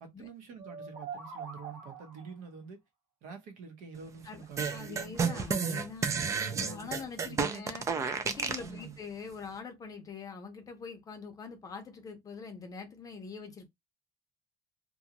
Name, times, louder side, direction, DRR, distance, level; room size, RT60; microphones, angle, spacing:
voice 1, 0.0-2.8 3.2-5.2 6.5-7.9 8.6-9.0, right 5 dB, 65° right, 0.9 m, -47 dB
sound 1, 0.6-2.4, right 6 dB, 90° right, 1.3 m, -44 dB
voice 2, 4.2-6.1 6.4-7.9 8.2-13.7, left 5 dB, 25° left, 0.6 m, -44 dB
sound 2, 4.6-8.7, right 5 dB, 20° right, 0.3 m, -31 dB
2.6 x 2.3 x 2.8 m
cardioid pair, 160°, 15 cm